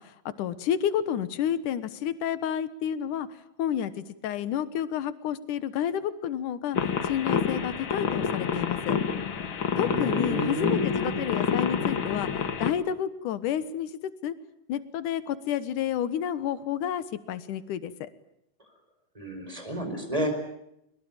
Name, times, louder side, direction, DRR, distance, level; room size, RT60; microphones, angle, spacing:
voice 1, 0.0-3.3 3.6-6.8 7.0-9.0 9.8-14.3 14.7-18.1, left 9 dB, 75° left, 14 dB, 2.7 m, -30 dB
sound 1, 6.7-12.7, left 6 dB, 45° left, 2.0 m, -28 dB
voice 2, 9.7-11.2 19.1-20.3, equal, 10° right, 6 dB, 4.8 m, -31 dB
23.0 x 21.5 x 8.8 m, 0.80 s
omnidirectional pair, 3.7 m